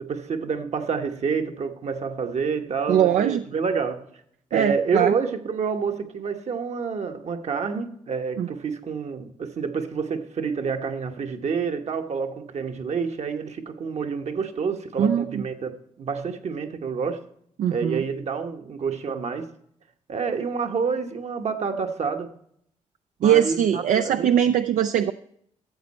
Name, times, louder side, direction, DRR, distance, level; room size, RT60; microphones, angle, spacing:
voice 1, 0.0-4.1 4.5-17.2 17.7-19.5 20.1-22.3 23.2-24.3, right 5 dB, 60° right, 1.2 m, -28 dB
voice 2, 2.9-3.4 4.5-5.1 8.4-8.5 15.0-15.3 17.6-18.0 23.2-25.1, right 10 dB, 80° right, 0.4 m, -21 dB
13.0 x 7.6 x 4.2 m
cardioid pair, 70°, 13 cm